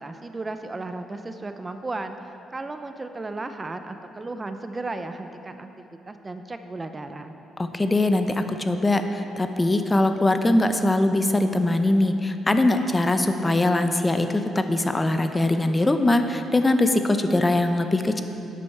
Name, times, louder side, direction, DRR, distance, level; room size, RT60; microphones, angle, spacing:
voice 1, 0.0-5.7 6.1-7.3, right 2 dB, 25° right, 8 dB, 0.5 m, -34 dB
voice 2, 7.6-18.2, left 2 dB, 20° left, 7 dB, 0.6 m, -22 dB
11.0 x 8.4 x 4.6 m, 3.0 s
cardioid pair, 90°, 0 cm